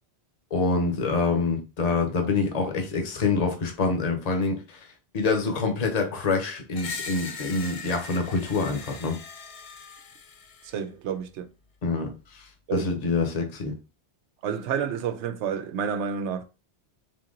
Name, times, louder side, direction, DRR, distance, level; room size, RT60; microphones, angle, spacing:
voice 1, 0.5-4.8 5.1-9.2 11.8-13.7, left 4 dB, 40° left, 0.9 m, -26 dB
Screech, 6.7-10.8, left 4 dB, 60° left, 0.3 m, -39 dB
voice 2, 10.6-11.5 12.7-13.0 14.4-16.4, right 7 dB, 85° right, 0.9 m, -29 dB
3.8 x 2.8 x 3.8 m
omnidirectional pair, 1.1 m